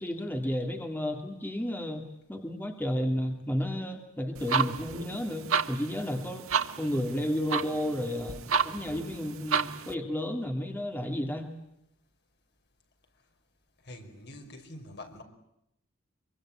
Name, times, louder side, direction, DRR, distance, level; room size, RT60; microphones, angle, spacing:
voice 1, 0.0-2.0 2.3-6.5 6.8-11.5, equal, 10° left, 2.3 m, -32 dB
sound 1, 4.3-9.9, right 6 dB, 85° right, 1.6 m, -32 dB
voice 2, 13.8-15.2, left 1 dB, 55° left, 5.2 m, -45 dB
25.5 x 24.5 x 8.7 m
head